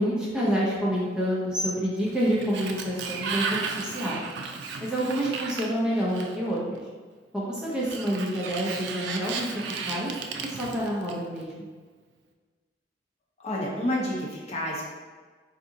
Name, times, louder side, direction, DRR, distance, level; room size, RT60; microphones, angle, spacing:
voice 1, 0.0-4.3 4.8-6.8 7.3-9.5 9.9-11.7, equal, 5° right, -7 dB, 0.6 m, -28 dB
Sliding door, 2.0-6.6 7.7-11.4, right 5 dB, 75° right, 0.3 m, -35 dB
voice 2, 13.4-14.9, left 1 dB, 40° left, -4 dB, 0.7 m, -29 dB
4.0 x 2.5 x 2.6 m, 1.5 s
head